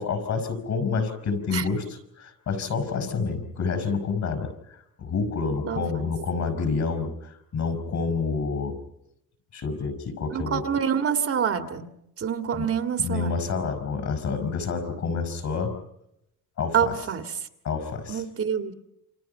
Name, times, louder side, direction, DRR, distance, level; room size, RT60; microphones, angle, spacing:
voice 1, 0.0-1.8 2.2-4.5 5.0-8.8 9.5-10.6 12.5-12.7 13.0-15.8 16.6-16.9 17.6-18.2, left 5 dB, 55° left, 9 dB, 5.6 m, -28 dB
voice 2, 5.7-6.1 10.3-11.9 12.2-13.3 16.7-17.5 18.1-18.7, right 7 dB, 45° right, 7 dB, 2.0 m, -27 dB
29.0 x 27.5 x 5.6 m, 0.81 s
cardioid pair, 140°, 33 cm